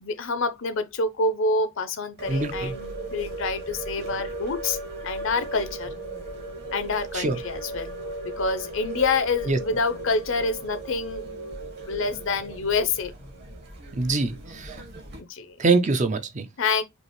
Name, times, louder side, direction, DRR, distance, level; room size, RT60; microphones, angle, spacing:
voice 1, 0.0-4.8 5.0-5.9 6.7-7.9 8.4-11.2 11.9-13.1 15.2-15.6 16.6-16.8, left 3 dB, 60° left, 0.7 m, -27 dB
sound 1, 2.2-15.2, right 2 dB, 50° right, 1.3 m, -37 dB
voice 2, 2.3-2.7 7.1-7.4 9.5-9.6 14.0-14.8 15.6-16.5, right 3 dB, 35° right, 0.5 m, -24 dB
5.3 x 2.5 x 3.0 m
head